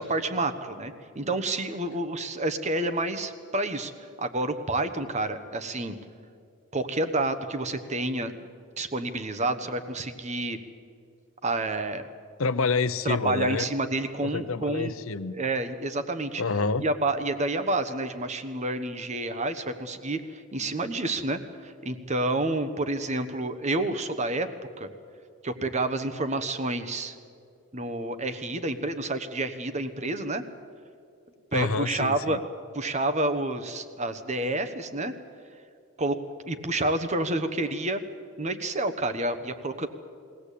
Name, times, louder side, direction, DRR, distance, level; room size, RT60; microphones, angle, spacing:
voice 1, 0.0-3.9 4.2-5.9 6.7-8.5 8.8-10.6 11.4-12.1 13.0-14.9 15.3-16.4 16.8-24.5 24.8-24.9 25.4-27.1 27.7-30.4 31.5-32.4 32.7-35.1 36.0-36.2 36.5-38.0 38.4-39.9, right 2 dB, 30° right, 10 dB, 1.2 m, -29 dB
voice 2, 12.4-13.7 14.2-15.4 16.4-16.8 31.5-32.4, left 4 dB, 70° left, 13 dB, 0.7 m, -27 dB
22.5 x 17.5 x 8.4 m, 2.4 s
head